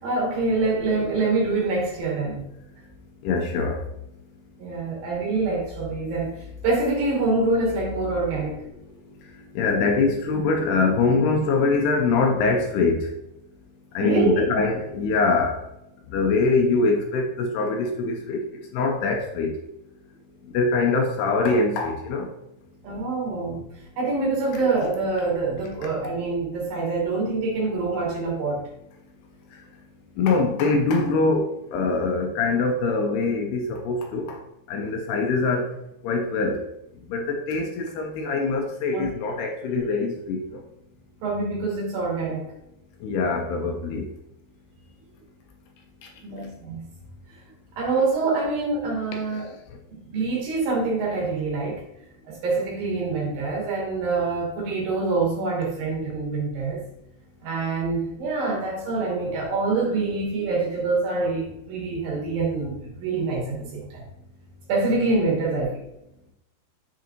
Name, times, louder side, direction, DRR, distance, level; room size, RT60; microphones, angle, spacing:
voice 1, 0.0-2.4 4.6-8.7 14.0-14.5 22.8-23.7 24.0-28.6 38.9-39.1 41.2-42.5 46.2-46.8 47.3-47.4 47.8-49.5 49.9-51.8 52.3-56.8 57.4-64.0 64.7-65.8, right 3 dB, 65° right, -3 dB, 2.8 m, -25 dB
voice 2, 3.2-3.8 9.6-13.1 13.9-15.7 16.1-18.4 18.7-19.5 20.5-22.3 30.2-34.4 34.7-35.7 36.0-36.6 37.1-40.6 43.0-44.1, left 3 dB, 80° left, 2 dB, 2.5 m, -23 dB
6.7 x 4.8 x 3.0 m, 0.83 s
omnidirectional pair, 4.9 m